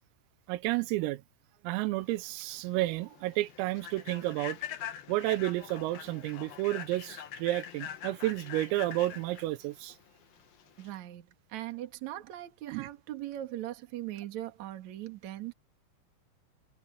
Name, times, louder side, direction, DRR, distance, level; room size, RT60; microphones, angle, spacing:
voice 1, 0.5-1.2 1.6-4.6 5.1-10.0 12.7-12.9, right 18 dB, 90° right, 3.6 m, -31 dB
Human voice / Train, 2.1-11.0, left 9 dB, 60° left, 2.7 m, -44 dB
voice 2, 10.8-15.5, right 14 dB, 50° right, 2.3 m, -40 dB
omnidirectional pair, 5.9 m